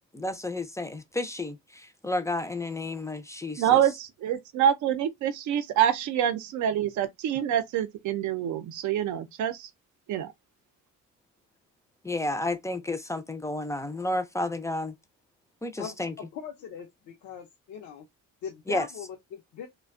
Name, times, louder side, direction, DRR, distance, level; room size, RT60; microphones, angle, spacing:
voice 1, 0.1-3.8 12.0-14.9 15.6-16.1 18.7-18.9, left 2 dB, 10° left, 0.4 m, -31 dB
voice 2, 3.6-9.7 10.1-10.3, right 10 dB, 75° right, 0.5 m, -26 dB
voice 3, 16.3-18.0 18.4-19.7, left 8 dB, 80° left, 0.6 m, -40 dB
2.4 x 2.2 x 2.4 m
cardioid pair, 90°, 30 cm